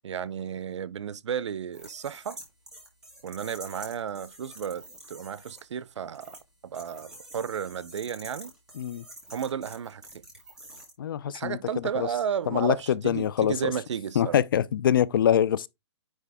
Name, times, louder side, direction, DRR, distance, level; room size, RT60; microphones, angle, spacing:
voice 1, 0.0-2.4 3.2-6.4 6.6-8.5 9.3-10.0 11.3-14.4, right 8 dB, 75° right, 0.6 m, -33 dB
sound 1, 1.7-5.6 6.1-6.4 6.7-10.9, right 1 dB, 5° right, 1.7 m, -47 dB
voice 2, 11.0-11.6 12.0-12.1 12.5-13.7 14.2-15.7, left 9 dB, 45° left, 0.5 m, -24 dB
9.7 x 3.3 x 3.5 m
hypercardioid pair, 165°, 15 cm